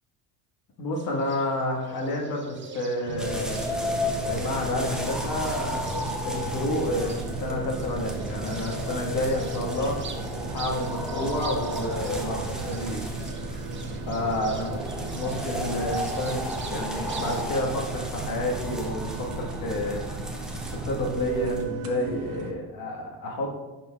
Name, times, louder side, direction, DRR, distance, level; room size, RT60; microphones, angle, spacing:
voice 1, 0.8-3.6 4.2-6.0 6.2-10.0 10.5-13.0 14.1-14.8 15.1-20.0 20.7-23.6, left 1 dB, 55° left, 0 dB, 1.5 m, -30 dB
Bird, 1.0-17.4, left 1 dB, 25° right, 0.8 m, -41 dB
sound 1, 3.0-22.5, right 4 dB, 70° right, 1.0 m, -37 dB
sound 2, 3.2-21.6, equal, ahead, 1.0 m, -33 dB
10.5 x 4.5 x 2.3 m, 1.1 s
supercardioid pair, 80°, 42 cm